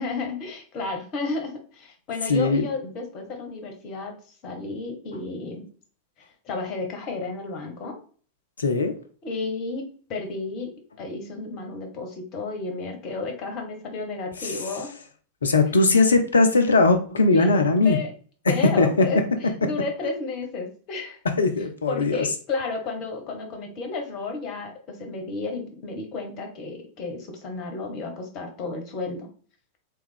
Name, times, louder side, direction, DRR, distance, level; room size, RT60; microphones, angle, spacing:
voice 1, 0.0-4.2 4.4-5.7 6.4-8.0 9.2-14.9 17.3-18.1 18.5-21.2 21.9-29.3, left 3 dB, 40° left, 4 dB, 1.1 m, -32 dB
voice 2, 2.3-2.6 8.6-8.9 14.4-14.6 15.4-18.0 18.8-19.1 21.4-22.3, left 3 dB, 70° left, 7 dB, 0.6 m, -19 dB
3.5 x 3.1 x 3.4 m, 0.43 s
figure-of-eight pair, 90°, 0 cm